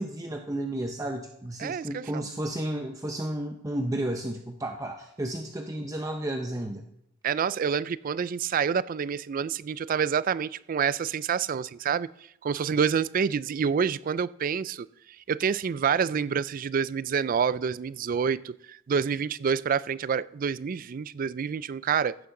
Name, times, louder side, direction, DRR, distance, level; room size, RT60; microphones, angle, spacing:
voice 1, 0.0-6.8, right 1 dB, 15° right, 0.7 m, -32 dB
voice 2, 1.6-2.3 7.2-12.1 12.4-14.9 15.3-22.2, right 6 dB, 45° right, 0.3 m, -27 dB
15.0 x 11.0 x 3.8 m
head